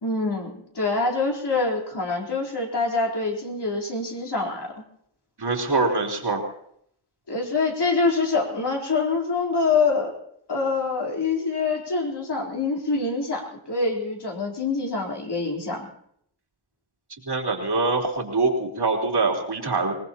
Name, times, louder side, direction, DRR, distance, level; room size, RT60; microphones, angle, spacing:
voice 1, 0.0-4.7 7.3-10.1 10.5-15.9, left 3 dB, 55° left, -2 dB, 4.0 m, -25 dB
voice 2, 5.4-6.4 17.3-20.0, right 3 dB, 55° right, 0 dB, 3.5 m, -24 dB
26.0 x 19.0 x 3.0 m, 0.70 s
wide cardioid pair, 85°, 48 cm